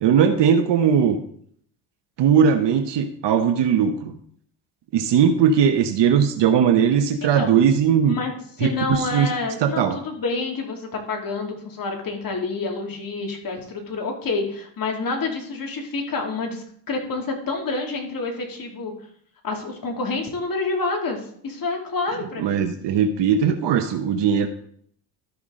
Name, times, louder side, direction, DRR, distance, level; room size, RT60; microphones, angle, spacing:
voice 1, 0.0-1.2 2.2-4.1 4.9-8.2 8.6-9.3 9.6-10.0 22.4-24.5, right 7 dB, 60° right, 7 dB, 1.0 m, -19 dB
voice 2, 7.2-7.6 8.0-8.3 8.6-18.9 19.4-22.6, left 3 dB, 45° left, 1 dB, 2.7 m, -28 dB
13.0 x 5.9 x 3.8 m, 0.64 s
supercardioid pair, 80°, 49 cm